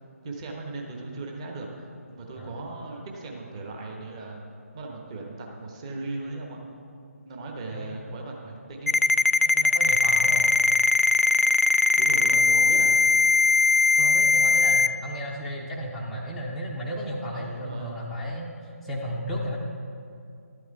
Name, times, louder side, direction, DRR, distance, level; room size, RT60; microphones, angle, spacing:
voice 1, 0.2-4.4 4.7-6.6 7.2-9.0 12.0-13.0 17.3-17.9, right 2 dB, 25° right, 0 dB, 1.1 m, -37 dB
Ringtone, 8.9-14.9, left 4 dB, 75° left, 0.4 m, -20 dB
voice 2, 9.5-10.6 14.0-18.5 18.8-19.6, equal, ahead, -6 dB, 0.6 m, -34 dB
12.5 x 8.4 x 4.6 m, 2.4 s
figure-of-eight pair, 150°, 8 cm